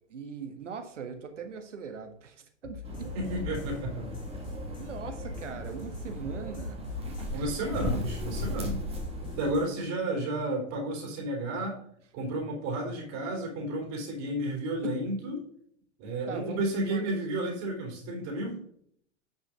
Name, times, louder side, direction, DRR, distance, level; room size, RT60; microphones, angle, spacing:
voice 1, 0.1-3.1 4.8-6.8 7.1-7.4 16.3-16.6 16.9-17.0, right 6 dB, 80° right, 5 dB, 1.7 m, -41 dB
sound 1, 2.6-9.7, left 7 dB, 65° left, 3.2 m, -45 dB
sound 2, 2.8-9.5, left 1 dB, 15° right, 2.4 m, -36 dB
voice 2, 3.1-4.1 7.3-8.8 9.4-11.8 12.1-15.5 16.0-18.6, right 1 dB, 45° right, 1 dB, 3.5 m, -32 dB
10.0 x 5.7 x 3.9 m, 0.65 s
figure-of-eight pair, 95°, 36 cm